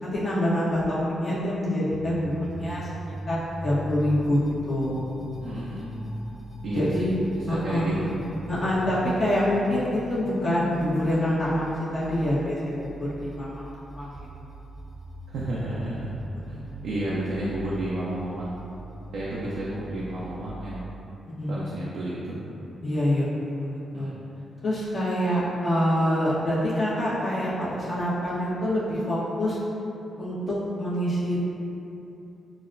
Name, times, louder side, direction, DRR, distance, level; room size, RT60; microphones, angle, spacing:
voice 1, 0.0-2.9 3.3-3.4 3.6-4.4 4.7-5.0 6.7-7.1 7.5-8.0 8.5-12.9 13.2-14.2 21.4-21.5 22.8-23.3 23.6-24.1 24.6-29.6 30.2-31.4, left 1 dB, 50° left, -10 dB, 0.9 m, -26 dB
sound 1, 1.9-20.4, right 1 dB, 5° left, 0.5 m, -40 dB
voice 2, 5.4-5.9 6.6-7.1 7.3-8.1 15.3-16.1 16.5-18.6 19.1-20.9 21.5-22.4 23.9-24.1, right 1 dB, 80° right, -7 dB, 0.5 m, -31 dB
5.9 x 2.2 x 2.5 m, 2.9 s
supercardioid pair, 55°, 0 cm